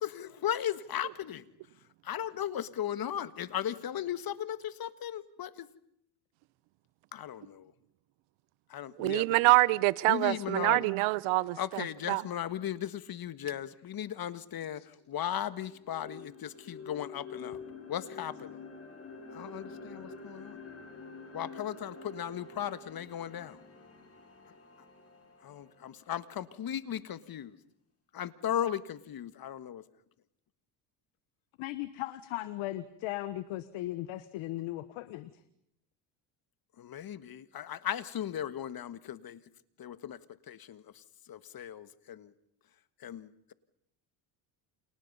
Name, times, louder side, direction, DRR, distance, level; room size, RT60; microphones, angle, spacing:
voice 1, 0.0-1.5 2.0-5.7 7.1-7.7 8.7-9.4 10.1-10.9 11.6-17.6 17.9-18.6 19.3-20.6 21.3-23.6 25.4-27.6 28.1-29.8 36.8-39.4 39.8-40.2 40.5-42.3 43.0-43.5, left 10 dB, 45° left, 1.6 m, -37 dB
voice 2, 9.0-11.6 12.1-12.2, right 21 dB, 70° right, 0.9 m, -25 dB
sound 1, 15.1-27.2, left 4 dB, 30° left, 5.8 m, -48 dB
voice 3, 31.6-35.3, left 15 dB, 70° left, 1.4 m, -37 dB
30.0 x 27.0 x 5.5 m
supercardioid pair, 90°, 50 cm